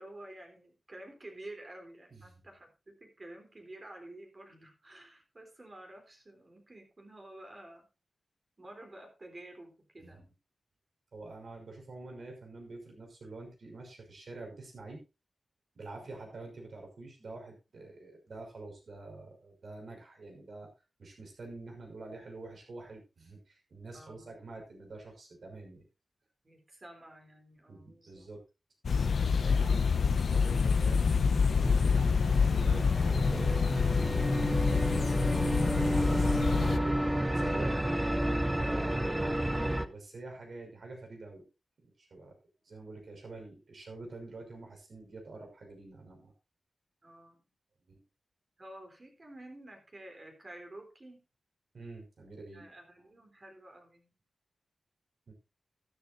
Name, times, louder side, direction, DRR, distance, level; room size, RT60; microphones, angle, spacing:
voice 1, 0.0-7.9 8.6-10.3 16.0-16.3 23.9-24.3 26.4-28.3 47.0-47.4 48.6-51.2 52.5-54.1, right 1 dB, 30° right, 3 dB, 3.6 m, -50 dB
voice 2, 11.1-15.0 15.8-20.7 21.0-25.9 27.7-28.4 29.4-34.3 34.8-36.9 37.3-37.7 38.6-41.4 41.8-42.3 42.6-46.3 47.9-48.0 51.7-52.7 55.3-55.4, right 3 dB, 65° right, 2 dB, 5.8 m, -47 dB
sound 1, 28.8-36.8, left 5 dB, 70° left, 0.6 m, -27 dB
sound 2, 30.7-39.9, right 1 dB, 10° right, 0.8 m, -31 dB
13.0 x 12.5 x 2.6 m, 0.28 s
wide cardioid pair, 130°, 0 cm